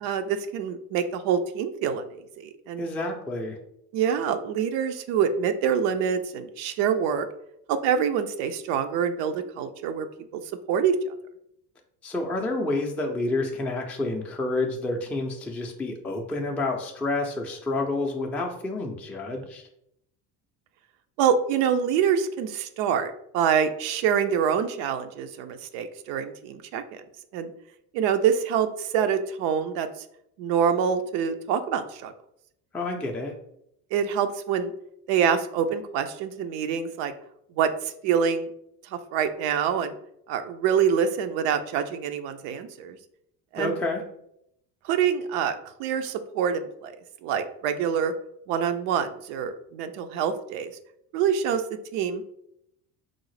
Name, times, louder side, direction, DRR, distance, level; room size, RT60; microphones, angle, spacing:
voice 1, 0.0-2.8 3.9-7.3 7.7-10.1 10.7-11.0 21.2-27.0 27.3-27.5 27.9-29.9 30.4-32.1 33.9-34.7 35.1-37.1 37.6-38.5 38.9-39.9 40.3-43.0 43.5-43.8 44.8-46.9 47.2-48.1 48.5-50.7 51.1-51.6 51.9-52.2, right 7 dB, 70° right, 9 dB, 0.5 m, -26 dB
voice 2, 2.8-3.6 12.0-19.7 32.7-33.3 43.6-44.0, left 2 dB, 5° left, 1 dB, 0.4 m, -29 dB
3.7 x 2.0 x 3.2 m, 0.77 s
supercardioid pair, 85°, 43 cm